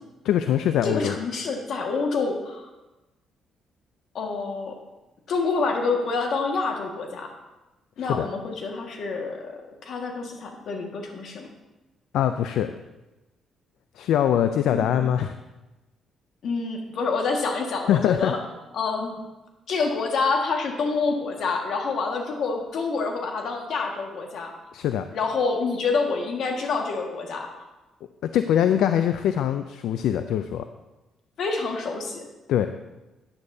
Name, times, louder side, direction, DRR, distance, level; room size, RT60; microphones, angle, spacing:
voice 1, 0.3-1.2 8.0-8.3 12.1-12.7 14.0-15.3 17.9-18.3 24.7-25.0 28.3-30.6 32.5-32.7, left 10 dB, 85° left, 9 dB, 0.4 m, -23 dB
voice 2, 0.8-2.7 4.1-4.7 5.3-7.3 8.0-11.5 14.7-15.1 16.4-18.4 18.7-19.2 19.7-24.5 25.1-27.5 31.4-32.2, left 4 dB, 65° left, 2 dB, 1.6 m, -27 dB
10.5 x 9.8 x 2.7 m, 1.1 s
cardioid pair, 90°, 0 cm